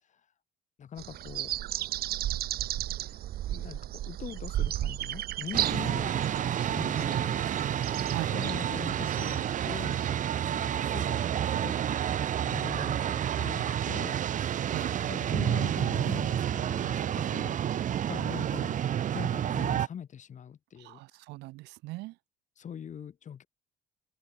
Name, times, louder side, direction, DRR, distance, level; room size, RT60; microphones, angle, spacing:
voice 1, 0.8-1.5 3.0-3.2 3.5-6.2 6.6-8.0 8.3-10.0 10.5-11.2 11.5-12.0 12.4-14.2 15.1-17.6 18.1-18.8 19.1-21.0 22.6-23.5, left 8 dB, 45° left, 3.8 m, -42 dB
sound 1, 1.0-10.1, right 13 dB, 65° right, 1.6 m, -35 dB
sound 2, 5.5-19.9, right 10 dB, 50° right, 1.2 m, -29 dB
voice 2, 8.1-8.6 14.7-15.1 20.8-22.1, right 20 dB, 90° right, 1.3 m, -40 dB
open air
cardioid pair, 110°, 17 cm